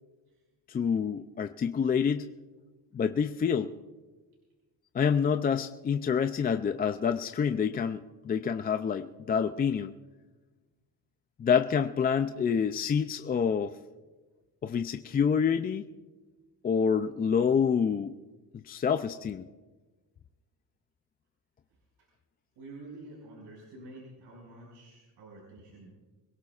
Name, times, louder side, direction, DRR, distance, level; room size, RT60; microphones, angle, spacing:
voice 1, 0.7-2.3 2.9-3.7 4.9-9.9 11.4-13.7 14.6-15.9 16.6-18.2 18.5-19.5, left 7 dB, 25° left, 8 dB, 0.3 m, -27 dB
voice 2, 22.6-25.9, right 2 dB, 70° right, -4 dB, 5.6 m, -48 dB
26.0 x 17.5 x 2.4 m, 1.3 s
cardioid pair, 130°, 42 cm